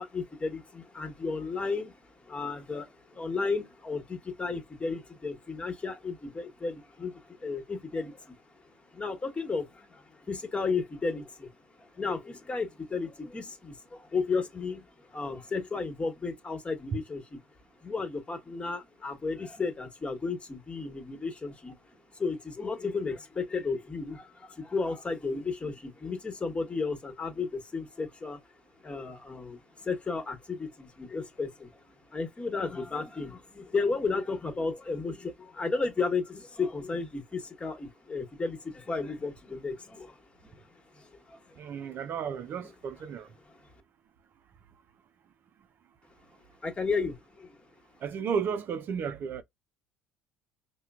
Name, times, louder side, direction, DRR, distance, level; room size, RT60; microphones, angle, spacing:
voice 1, 0.0-2.0 2.3-8.3 8.9-11.5 11.8-14.8 15.1-17.4 17.8-21.7 22.1-28.4 28.8-31.7 32.1-40.2 40.4-40.5 41.0-41.5 42.6-42.7 46.6-47.5, left 4 dB, 25° left, 1.3 m, -33 dB
voice 2, 41.6-43.3 48.0-49.4, right 6 dB, 45° right, 0.5 m, -33 dB
5.5 x 2.2 x 2.4 m
figure-of-eight pair, 55°, 5 cm